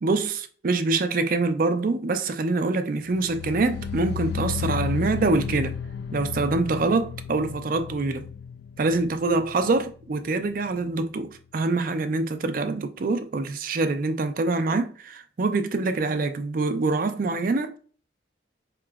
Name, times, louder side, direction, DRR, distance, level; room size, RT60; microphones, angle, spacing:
voice 1, 0.0-5.8 6.1-8.3 8.8-17.8, right 3 dB, 45° right, 0.4 m, -25 dB
sound 1, 3.1-10.2 10.4-10.9 11.2-11.3, left 7 dB, 65° left, 0.3 m, -33 dB
4.8 x 2.9 x 2.3 m
head